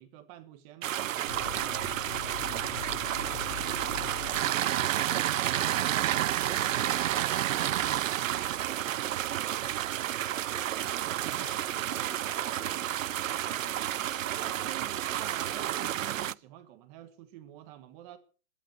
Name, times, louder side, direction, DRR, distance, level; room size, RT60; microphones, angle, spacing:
voice 1, 0.0-2.9 3.2-5.7 6.2-7.6 14.2-18.2, right 12 dB, 25° right, 1.4 m, -49 dB
sound 1, 0.8-16.3, right 12 dB, 70° right, 0.7 m, -30 dB
sound 2, 1.3-5.0, left 12 dB, 50° left, 0.7 m, -42 dB
voice 2, 11.4-14.0 14.3-14.7, left 10 dB, 70° left, 2.0 m, -54 dB
14.0 x 14.0 x 6.5 m
hypercardioid pair, 160°, 41 cm